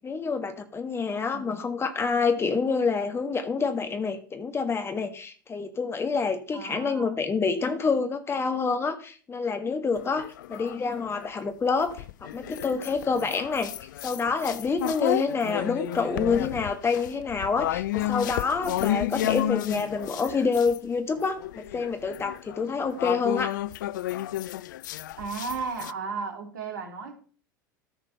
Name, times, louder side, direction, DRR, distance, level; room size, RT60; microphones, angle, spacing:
voice 1, 0.0-12.0 12.3-13.7 14.0-23.5, left 4 dB, 20° left, 7 dB, 1.4 m, -27 dB
voice 2, 1.1-1.7 6.5-7.2 25.2-27.2, right 5 dB, 65° right, 4 dB, 2.6 m, -35 dB
sound 1, 10.0-11.3 11.9-20.8 21.2-25.9, left 14 dB, 65° left, 0.4 m, -32 dB
13.5 x 4.9 x 5.7 m, 0.40 s
figure-of-eight pair, 75°, 11 cm